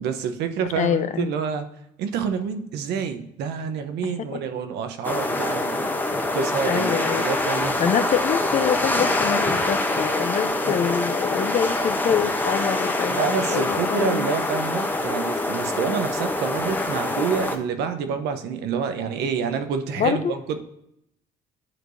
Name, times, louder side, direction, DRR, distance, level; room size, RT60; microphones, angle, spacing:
voice 1, 0.0-1.7 2.0-7.9 10.6-11.0 13.1-20.6, right 6 dB, 80° right, 8 dB, 0.9 m, -28 dB
voice 2, 0.8-1.3 4.0-4.4 6.7-7.2 7.8-13.2 13.5-14.3 20.0-20.3, left 8 dB, 45° left, 10 dB, 0.7 m, -25 dB
sound 1, 5.0-17.6, left 2 dB, 10° left, 0.8 m, -25 dB
11.0 x 4.6 x 2.7 m, 0.76 s
cardioid pair, 110°, 17 cm